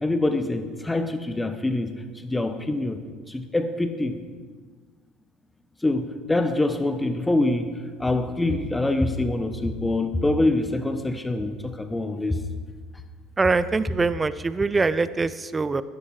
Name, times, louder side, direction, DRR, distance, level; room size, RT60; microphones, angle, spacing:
voice 1, 0.0-1.9 2.2-3.0 3.3-4.2 5.8-7.7 8.0-12.4, left 2 dB, 10° left, 9 dB, 1.2 m, -25 dB
voice 2, 13.4-15.8, right 4 dB, 20° right, 15 dB, 0.6 m, -23 dB
13.5 x 10.0 x 5.0 m, 1.5 s
supercardioid pair, 85°, 0 cm